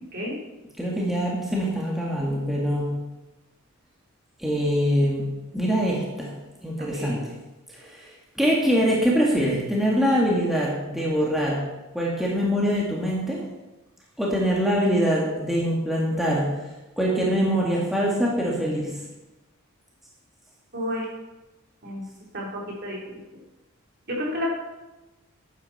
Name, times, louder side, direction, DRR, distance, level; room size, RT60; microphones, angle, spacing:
voice 1, 0.8-2.9 4.4-5.3 5.5-6.3 6.6-7.3 7.7-8.1 8.4-11.6 11.9-13.4 14.2-16.6 17.0-19.0, equal, ahead, -4 dB, 1.9 m, -24 dB
voice 2, 6.8-7.2 20.7-21.1 21.8-22.1 22.3-23.0 24.1-24.5, equal, 50° right, -3 dB, 3.5 m, -31 dB
13.0 x 9.4 x 4.2 m, 1.1 s
head